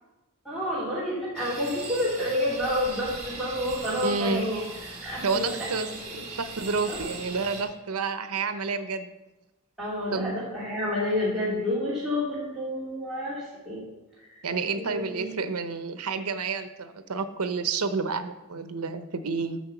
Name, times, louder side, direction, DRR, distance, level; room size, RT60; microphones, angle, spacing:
voice 1, 0.4-4.6 5.0-5.6 6.1-6.2 6.9-7.1 9.8-13.8 14.8-15.4, left 1 dB, ahead, -10 dB, 2.6 m, -29 dB
sound 1, 1.4-7.6, right 3 dB, 30° right, 2.2 m, -39 dB
voice 2, 4.0-4.4 5.2-5.9 6.4-9.1 10.1-10.3 14.4-19.6, right 4 dB, 85° right, 10 dB, 0.8 m, -29 dB
8.7 x 6.5 x 7.0 m, 1.0 s
head